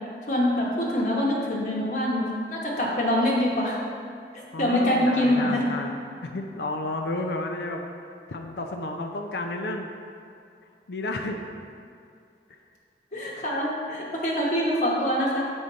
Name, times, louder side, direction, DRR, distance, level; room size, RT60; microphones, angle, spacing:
voice 1, 0.3-3.7 4.3-5.6 13.1-15.4, left 1 dB, 45° left, -4 dB, 1.2 m, -25 dB
voice 2, 4.5-6.0 6.2-7.8 8.3-9.9 10.9-11.4, left 2 dB, 75° left, 3 dB, 0.5 m, -31 dB
7.1 x 5.0 x 4.0 m, 2.4 s
head